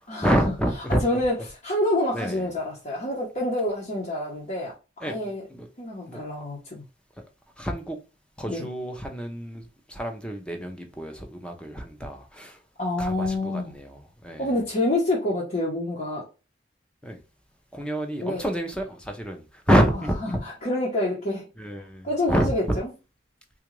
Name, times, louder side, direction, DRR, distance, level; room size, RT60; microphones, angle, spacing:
voice 1, 0.2-1.0 2.1-2.5 5.0-5.1 5.5-5.7 6.1-6.2 7.6-8.0 8.4-12.6 13.0-14.5 17.0-17.2 17.7-20.4 21.6-22.8, equal, 5° left, 4 dB, 0.6 m, -27 dB
voice 2, 0.9-4.7 5.0-5.5 5.8-6.8 8.5-8.7 12.8-13.7 14.4-16.2 18.2-18.4 20.4-21.5 22.0-22.9, left 1 dB, 45° left, -6 dB, 1.0 m, -27 dB
3.7 x 2.4 x 3.1 m, 0.30 s
head